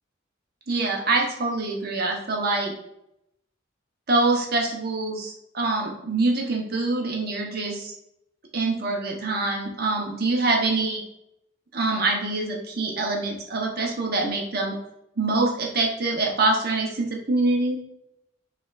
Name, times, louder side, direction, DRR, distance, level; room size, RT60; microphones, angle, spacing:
voice 1, 0.7-2.7 4.1-7.9 8.5-11.0 11.7-14.8 15.2-17.8, right 3 dB, 50° right, 0 dB, 1.1 m, -25 dB
5.7 x 3.5 x 2.6 m, 0.80 s
head